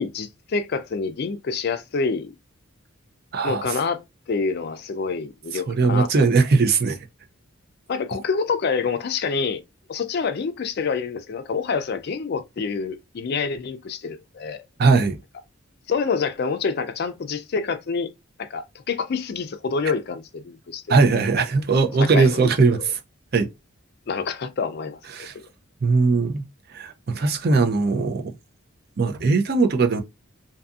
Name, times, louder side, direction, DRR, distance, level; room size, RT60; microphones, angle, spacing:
voice 1, 0.0-2.3 3.4-4.0 4.3-6.2 7.9-9.6 9.9-14.6 15.9-18.1 18.4-20.8 22.0-22.5 22.8-22.9 24.1-25.3, left 5 dB, 50° left, 0.4 m, -27 dB
voice 2, 3.3-3.6 5.5-7.0 14.8-15.2 20.9-23.0 23.3-23.5 25.1-25.3 25.8-26.4 26.7-28.2 29.0-30.0, right 4 dB, 45° right, 0.4 m, -19 dB
2.6 x 2.5 x 2.4 m
head